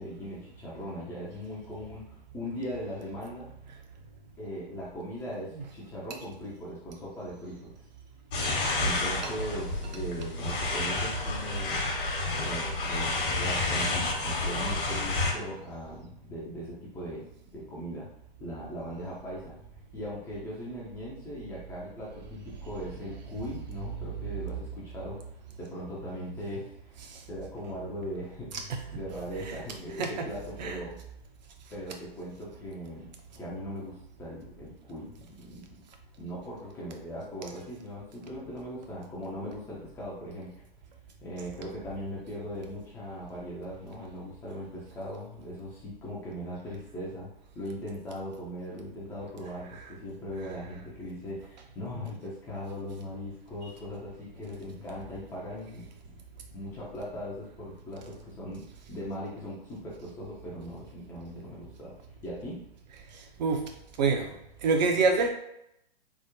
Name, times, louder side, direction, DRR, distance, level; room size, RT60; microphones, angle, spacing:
voice 1, 0.0-3.5 4.4-7.7 8.8-11.9 12.4-17.3 17.5-18.1 18.4-19.6 19.9-25.2 25.6-27.0 27.3-28.5 28.9-31.0 31.7-33.1 33.4-35.8 36.2-40.6 41.2-47.3 47.5-56.2 56.5-62.0 62.2-62.6, equal, 10° left, -7 dB, 0.4 m, -39 dB
sound 1, 8.3-15.3, left 2 dB, 60° left, 1.0 m, -30 dB
voice 2, 63.1-63.6 64.0-64.4 64.6-65.3, right 4 dB, 45° right, 4 dB, 0.6 m, -26 dB
3.5 x 2.0 x 2.9 m, 0.78 s
hypercardioid pair, 125°, 30 cm